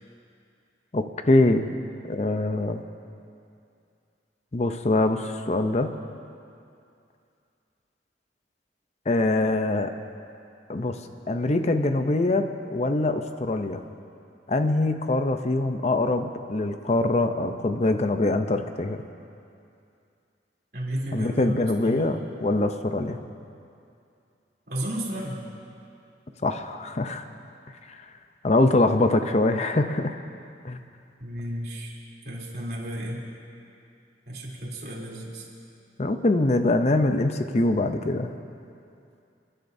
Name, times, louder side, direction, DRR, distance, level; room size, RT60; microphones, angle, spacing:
voice 1, 0.9-1.7 2.1-2.8 4.5-5.9 9.1-9.9 10.7-11.0 11.3-12.5 12.7-13.8 14.5-19.0 21.1-23.2 26.4-27.2 27.9-28.0 28.4-30.2 30.6-30.8 36.0-38.3, left 2 dB, 40° left, 8 dB, 0.6 m, -23 dB
voice 2, 20.7-21.5 21.8-22.1 24.7-25.4 31.2-31.9 32.2-33.2 34.3-35.4, equal, 60° right, -5 dB, 3.2 m, -32 dB
28.0 x 11.5 x 2.7 m, 2.5 s
head